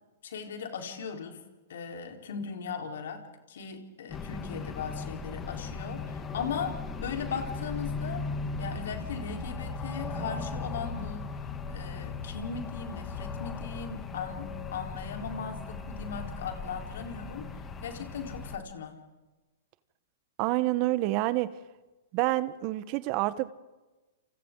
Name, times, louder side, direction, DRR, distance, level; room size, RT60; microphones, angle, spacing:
voice 1, 0.2-1.4 1.7-6.7 7.0-8.2 8.6-11.4 11.7-17.5 17.8-19.0, left 6 dB, 70° left, 3 dB, 4.1 m, -38 dB
sound 1, 4.1-18.6, left 4 dB, 20° left, 2.5 m, -37 dB
voice 2, 20.4-21.5 22.1-23.5, right 18 dB, 45° right, 15 dB, 1.2 m, -27 dB
29.5 x 28.5 x 3.9 m, 1.1 s
hypercardioid pair, 115°, 0 cm